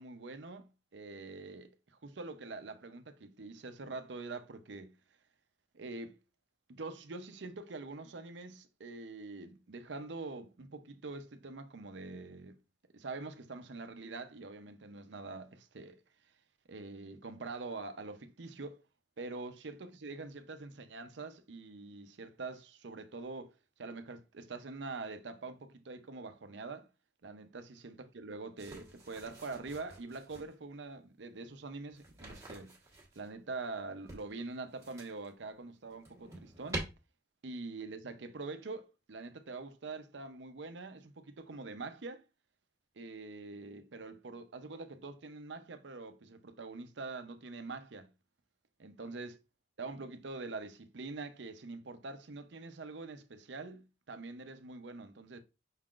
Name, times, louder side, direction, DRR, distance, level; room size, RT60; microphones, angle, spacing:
voice 1, 0.0-1.7 2.0-4.9 5.7-6.2 6.7-12.6 12.9-16.0 16.7-18.8 19.2-23.5 23.8-26.9 27.2-32.7 33.2-36.9 37.4-42.2 43.0-48.1 48.8-49.3 49.8-55.4, right 3 dB, 75° right, 0.7 m, -44 dB
sound 1, 28.6-30.5 31.9-33.3 34.1-35.3 35.8-36.8, right 2 dB, 15° right, 1.2 m, -46 dB
5.5 x 3.7 x 2.4 m
head